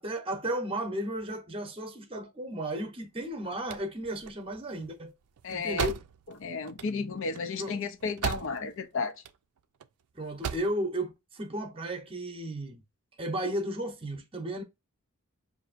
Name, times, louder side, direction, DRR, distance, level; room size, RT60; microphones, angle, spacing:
voice 1, 0.0-5.1 5.5-6.0 7.6-7.7 10.1-12.8 13.2-14.6, right 1 dB, 25° right, 0.8 m, -34 dB
sound 1, 3.2-8.8 9.1-9.9 10.2-10.8, right 7 dB, 90° right, 0.4 m, -38 dB
voice 2, 5.4-5.9 6.4-9.1, left 4 dB, 60° left, 0.6 m, -33 dB
5.7 x 2.7 x 2.5 m
head